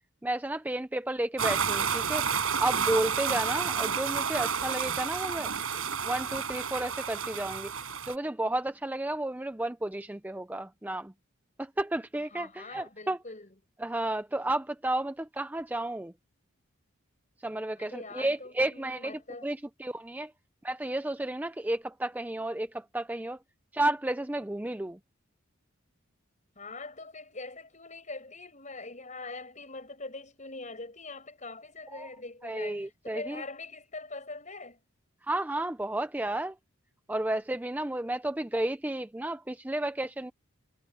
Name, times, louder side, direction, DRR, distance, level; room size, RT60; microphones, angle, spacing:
voice 1, 0.2-2.3 2.6-7.7 8.1-11.1 11.6-13.2 13.8-16.1 17.4-20.3 20.6-23.4 23.7-25.0 31.9-32.1 32.4-33.4 35.3-36.6 37.1-40.3, right 1 dB, 10° right, 0.4 m, -32 dB
sound 1, 1.4-8.1, right 6 dB, 85° right, 4.9 m, -30 dB
voice 2, 12.3-13.5 17.8-19.5 26.6-34.8, left 3 dB, 35° left, 6.1 m, -43 dB
head